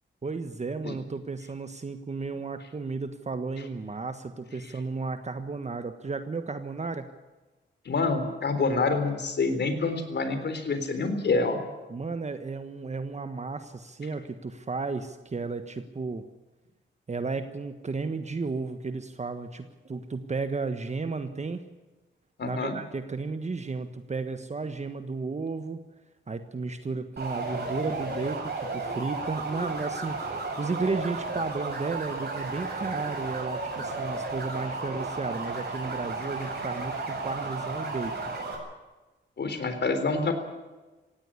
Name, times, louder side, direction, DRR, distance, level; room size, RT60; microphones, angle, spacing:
voice 1, 0.2-7.1 11.9-16.2 17.1-21.6 22.4-25.8 26.3-30.3 30.6-38.1, right 4 dB, 35° right, 8 dB, 1.4 m, -33 dB
voice 2, 7.9-11.6 22.4-22.7 39.4-40.3, left 3 dB, 60° left, 9 dB, 3.8 m, -27 dB
sound 1, 27.2-38.5, right 3 dB, 55° right, 7.4 m, -33 dB
18.0 x 17.0 x 10.0 m, 1.2 s
wide cardioid pair, 100°, 20 cm